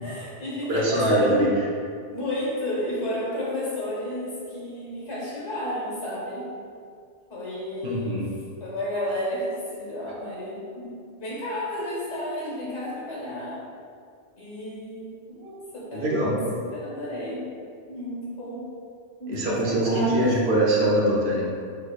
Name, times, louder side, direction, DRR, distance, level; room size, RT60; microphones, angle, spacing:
voice 1, 0.0-1.4 2.1-6.5 7.3-8.2 8.6-13.6 14.4-16.1 16.5-17.5 17.9-18.6 19.2-20.3, left 1 dB, 75° left, -6 dB, 1.6 m, -32 dB
voice 2, 0.7-1.6 7.8-8.3 15.9-16.4 19.3-21.4, right 1 dB, 65° right, -3 dB, 1.0 m, -23 dB
6.2 x 3.2 x 2.3 m, 2.3 s
omnidirectional pair, 1.2 m